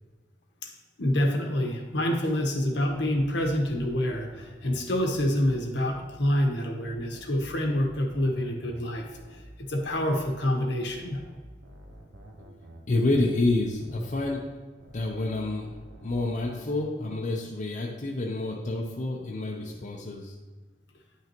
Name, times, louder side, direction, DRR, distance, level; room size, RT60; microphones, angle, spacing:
voice 1, 1.0-11.2, left 1 dB, 70° left, 2 dB, 1.2 m, -27 dB
sound 1, 2.8-6.3 6.8-10.3 10.8-14.3 14.8-16.8, right 1 dB, 80° right, 1.1 m, -49 dB
voice 2, 12.9-14.4 14.9-15.7 16.0-20.3, left 2 dB, 45° left, -1 dB, 0.7 m, -28 dB
9.8 x 5.8 x 3.0 m, 1.3 s
head